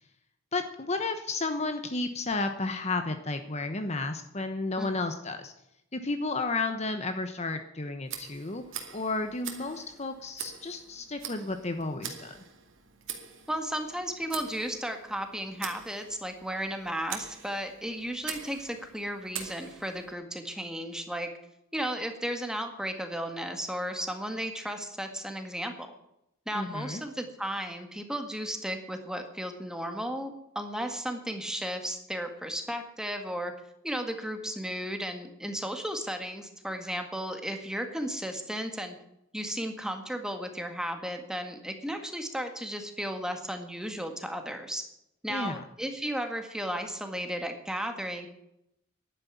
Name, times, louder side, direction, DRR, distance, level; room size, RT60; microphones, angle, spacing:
voice 1, 0.5-5.5 5.9-8.6 8.9-12.4 26.5-27.0 45.3-45.6, left 3 dB, 35° left, 7 dB, 1.0 m, -32 dB
Tick, 8.0-20.1, right 8 dB, 70° right, 2.3 m, -44 dB
voice 2, 13.5-21.3 21.7-25.9 26.5-33.5 33.8-39.0 39.3-44.8 45.2-48.3, equal, 5° right, 5 dB, 1.8 m, -34 dB
11.0 x 9.7 x 9.4 m, 0.81 s
head